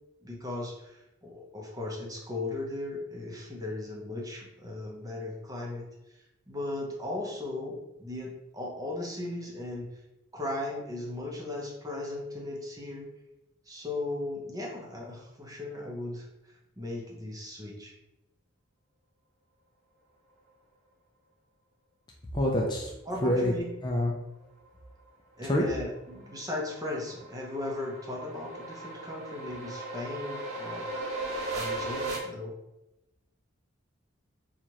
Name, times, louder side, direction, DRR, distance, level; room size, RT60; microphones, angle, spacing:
voice 1, 0.2-9.9 10.3-13.1 13.7-16.3 16.8-17.9 23.1-23.7 25.4-30.9 31.5-32.5, left 2 dB, 15° right, -2 dB, 0.7 m, -37 dB
voice 2, 22.3-22.9 23.2-23.5 23.8-24.1 25.4-25.6, left 1 dB, 20° left, -1 dB, 0.4 m, -26 dB
sound 1, 25.8-32.2, right 2 dB, 90° right, 0.9 m, -37 dB
4.5 x 2.4 x 2.9 m, 0.92 s
head